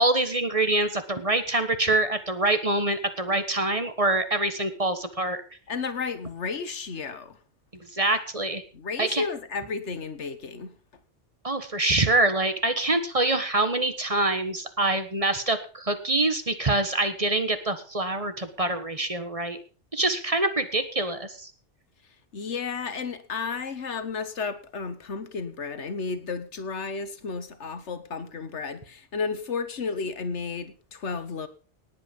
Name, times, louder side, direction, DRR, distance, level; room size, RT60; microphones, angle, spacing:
voice 1, 0.0-5.4 7.9-8.6 9.0-9.2 11.4-19.6 19.9-21.5, right 2 dB, 30° right, 10 dB, 1.4 m, -25 dB
voice 2, 5.7-7.4 8.7-10.7 22.3-31.5, left 5 dB, 75° left, 12 dB, 1.6 m, -32 dB
18.5 x 8.5 x 5.3 m, 0.39 s
omnidirectional pair, 1.2 m